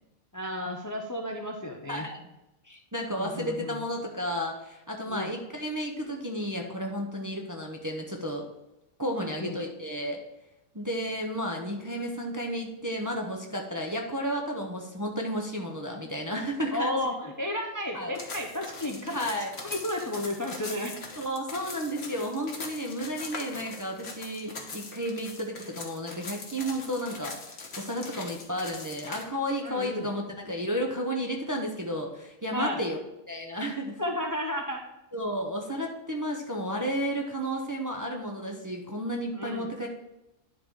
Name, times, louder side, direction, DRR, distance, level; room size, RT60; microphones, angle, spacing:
voice 1, 0.3-2.1 3.1-3.8 5.1-5.3 9.2-9.6 16.7-19.2 19.6-21.0 29.6-30.1 32.5-32.8 34.0-34.8 39.3-39.7, left 1 dB, 30° left, 2 dB, 0.3 m, -33 dB
voice 2, 1.9-2.2 2.6-8.4 9.0-10.2 10.7-17.1 17.9-18.1 19.1-19.5 21.2-33.0 33.3-34.0 35.1-39.9, equal, 20° right, 0 dB, 0.5 m, -32 dB
sound 1, 18.1-29.2, left 3 dB, 50° left, 1.3 m, -41 dB
10.5 x 3.9 x 4.7 m, 0.93 s
omnidirectional pair, 1.5 m